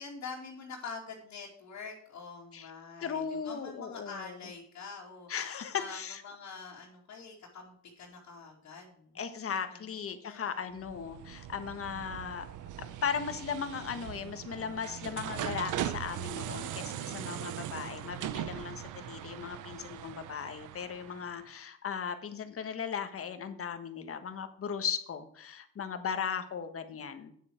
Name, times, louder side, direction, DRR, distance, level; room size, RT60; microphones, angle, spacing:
voice 1, 0.0-10.8, left 4 dB, 65° left, -4 dB, 2.6 m, -46 dB
voice 2, 3.0-4.4 5.3-6.2 9.1-12.5 12.8-27.3, left 7 dB, 50° left, 9 dB, 1.5 m, -37 dB
sound 1, 10.7-21.5, right 11 dB, 80° right, 0.8 m, -40 dB
9.1 x 7.7 x 6.2 m, 0.65 s
cardioid pair, 90°, 30 cm